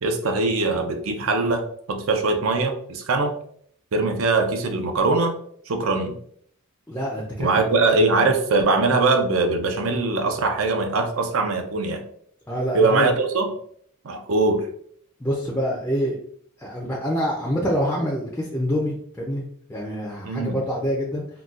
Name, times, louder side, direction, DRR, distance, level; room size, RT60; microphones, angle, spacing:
voice 1, 0.0-3.3 3.9-5.3 5.7-6.2 7.4-12.0 12.7-13.5 14.0-14.6 20.2-20.6, right 3 dB, 70° right, 5 dB, 0.5 m, -22 dB
voice 2, 6.9-7.5 12.5-13.1 15.2-16.2 16.6-19.4 19.7-21.2, equal, 10° left, -3 dB, 0.4 m, -26 dB
3.9 x 2.2 x 2.4 m, 0.64 s
head